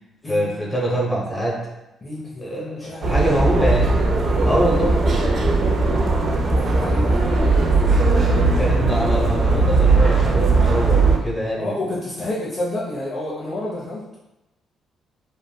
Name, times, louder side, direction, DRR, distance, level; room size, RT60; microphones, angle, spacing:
voice 1, 0.2-1.7 2.4-4.0 4.4-5.0 8.5-11.8, equal, 10° left, -5 dB, 0.9 m, -24 dB
voice 2, 2.0-3.2 4.3-4.5 6.5-7.2 11.6-14.2, left 1 dB, 35° left, -7 dB, 0.6 m, -29 dB
sound 1, 3.0-11.2, right 3 dB, 50° right, 0.4 m, -18 dB
3.1 x 2.1 x 2.2 m, 0.93 s
cardioid pair, 90°, 0 cm